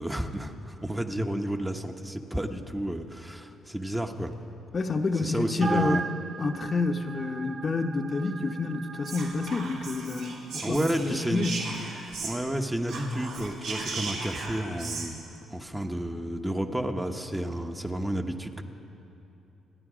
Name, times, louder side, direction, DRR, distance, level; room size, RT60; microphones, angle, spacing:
voice 1, 0.0-4.4 5.2-6.0 10.6-11.5 12.2-15.2 15.5-18.6, right 1 dB, 10° right, 4 dB, 1.0 m, -31 dB
voice 2, 4.7-6.0 6.4-11.6, left 3 dB, 40° left, 5 dB, 0.9 m, -29 dB
sound 1, 5.6-10.1, right 4 dB, 50° right, 0.6 m, -37 dB
Whispering, 9.0-12.6 12.8-15.1, right 3 dB, 85° right, 3.3 m, -37 dB
28.0 x 9.8 x 5.0 m, 2.9 s
cardioid pair, 90°, 0 cm